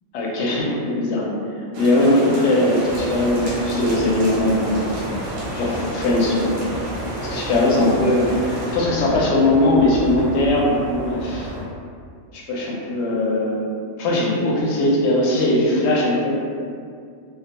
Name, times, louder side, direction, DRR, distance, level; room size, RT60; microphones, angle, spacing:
voice 1, 0.1-1.2 1.8-4.9 5.5-6.5 7.2-11.5 12.3-13.6 14.0-16.4, left 1 dB, 65° left, -4 dB, 0.7 m, -20 dB
sound 1, 1.7-8.8, right 1 dB, 90° right, 1.0 m, -31 dB
sound 2, 2.8-11.6, equal, ahead, 0.9 m, -33 dB
2.2 x 2.1 x 2.8 m, 2.2 s
omnidirectional pair, 1.4 m